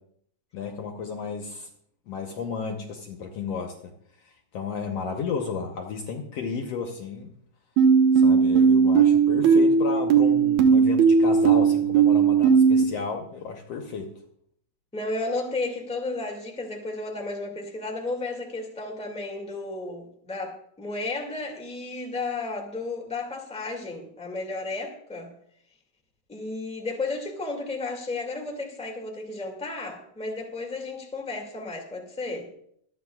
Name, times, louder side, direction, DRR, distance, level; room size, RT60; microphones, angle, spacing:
voice 1, 0.5-1.7 2.1-3.9 4.3-7.3 8.2-14.1, left 5 dB, 65° left, 3 dB, 1.9 m, -33 dB
sound 1, 7.8-12.8, right 6 dB, 70° right, 2.5 m, -18 dB
voice 2, 14.9-25.3 26.3-32.5, left 3 dB, 5° left, 2 dB, 1.6 m, -33 dB
25.0 x 9.7 x 2.4 m, 0.68 s
omnidirectional pair, 3.5 m